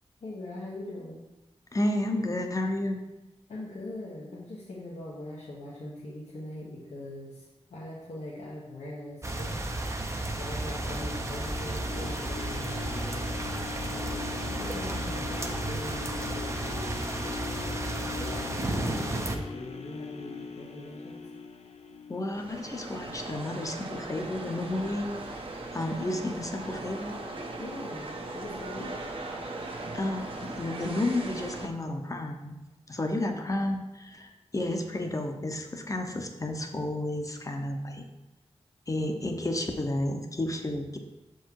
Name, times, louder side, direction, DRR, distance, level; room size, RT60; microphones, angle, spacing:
voice 1, 0.2-1.2 3.5-9.6 10.3-13.3 13.9-16.9 17.4-21.2 27.6-29.0, left 1 dB, 85° left, -7 dB, 1.3 m, -41 dB
voice 2, 1.7-3.0 22.1-25.4 25.7-27.2 29.9-32.6 32.9-38.0 38.9-41.0, left 1 dB, 30° left, 4 dB, 0.8 m, -31 dB
sound 1, 9.2-19.4, right 2 dB, 25° right, 0.7 m, -33 dB
sound 2, 10.9-23.0 23.5-23.6, left 5 dB, 70° left, 0.6 m, -41 dB
sound 3, 22.3-31.7, right 2 dB, 55° right, 0.9 m, -39 dB
6.8 x 4.7 x 4.6 m, 1.0 s
wide cardioid pair, 100°, 11 cm